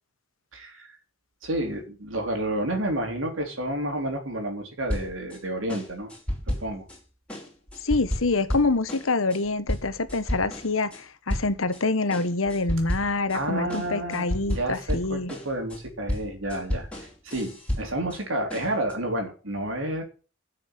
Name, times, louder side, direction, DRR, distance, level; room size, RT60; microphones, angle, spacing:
voice 1, 0.5-0.9 1.4-6.1 6.5-6.9 13.3-20.0, right 1 dB, 75° right, 3.6 m, -30 dB
sound 1, 4.9-5.4 5.7-7.0 7.3-11.0 11.3-11.8 12.1-13.4 13.7-18.2 18.5-18.9, equal, 5° left, 4.1 m, -32 dB
voice 2, 7.8-15.3, left 3 dB, 90° left, 1.3 m, -26 dB
12.0 x 6.5 x 8.3 m
head